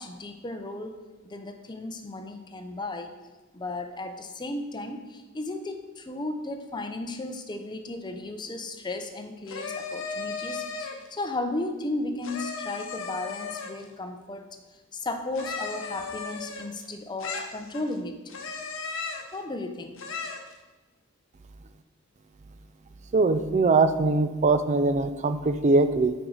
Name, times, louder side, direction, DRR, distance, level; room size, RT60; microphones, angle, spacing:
voice 1, 0.0-3.1 3.5-14.5 14.9-18.2 19.3-20.0, left 2 dB, 20° left, 6 dB, 0.5 m, -35 dB
sound 1, 9.5-11.1 12.2-13.9 15.3-16.9 17.2-17.9 18.3-19.3 20.0-20.5, left 4 dB, 65° left, 0.8 m, -35 dB
voice 2, 23.1-26.1, right 3 dB, 35° right, 11 dB, 0.4 m, -22 dB
9.0 x 4.6 x 3.9 m, 1.2 s
head